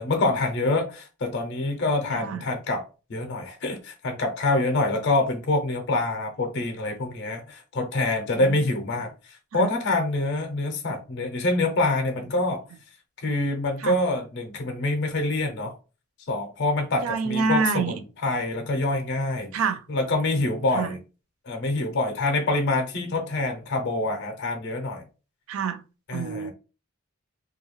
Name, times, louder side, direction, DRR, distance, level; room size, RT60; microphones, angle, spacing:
voice 1, 0.0-2.8 3.1-12.6 13.2-15.8 16.3-19.5 19.9-21.0 21.5-25.0 26.1-26.5, left 2 dB, 55° left, 0.5 m, -26 dB
voice 2, 17.0-18.0 19.5-19.8 20.7-20.9 25.5-25.8 26.1-26.5, right 5 dB, 80° right, 0.4 m, -26 dB
2.3 x 2.2 x 3.0 m
head